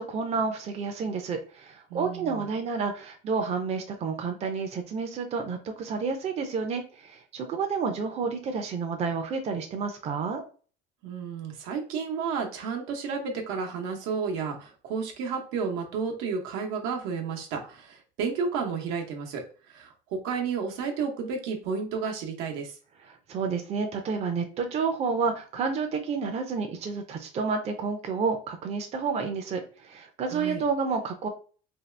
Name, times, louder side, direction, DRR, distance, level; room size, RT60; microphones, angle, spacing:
voice 1, 0.0-10.4 23.1-31.3, right 5 dB, 30° right, 4 dB, 0.5 m, -30 dB
voice 2, 1.9-2.5 11.0-22.8 30.3-30.6, right 5 dB, 85° right, 2 dB, 0.9 m, -32 dB
2.7 x 2.3 x 3.2 m, 0.39 s
cardioid pair, 145°, 21 cm